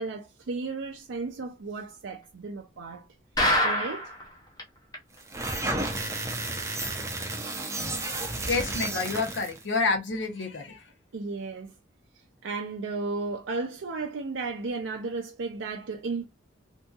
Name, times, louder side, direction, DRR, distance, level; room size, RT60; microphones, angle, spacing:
voice 1, 0.0-3.1 3.6-4.1 7.5-7.7 11.1-11.7 12.4-16.2, right 3 dB, 70° right, 0.5 m, -34 dB
sound 1, 3.4-4.2 4.6-4.7 4.9-5.0 5.5-5.6, equal, 20° left, 0.7 m, -24 dB
sound 2, 5.2-9.6, right 2 dB, 15° right, 0.5 m, -32 dB
voice 2, 8.5-10.8, left 4 dB, 70° left, 0.8 m, -28 dB
2.7 x 2.7 x 2.3 m
head